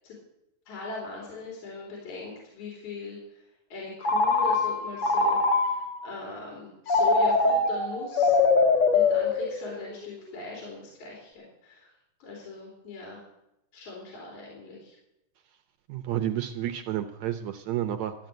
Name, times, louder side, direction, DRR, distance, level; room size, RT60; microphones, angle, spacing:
voice 1, 0.7-3.4 3.7-8.4 8.9-11.9 12.2-13.2 13.7-15.0, left 4 dB, 65° left, -3 dB, 4.5 m, -40 dB
Telephone, 4.0-6.0 6.9-9.9, left 3 dB, 45° left, 1.8 m, -23 dB
voice 2, 15.9-18.1, right 12 dB, 75° right, 9 dB, 1.8 m, -30 dB
13.5 x 7.8 x 9.2 m, 0.85 s
omnidirectional pair, 3.7 m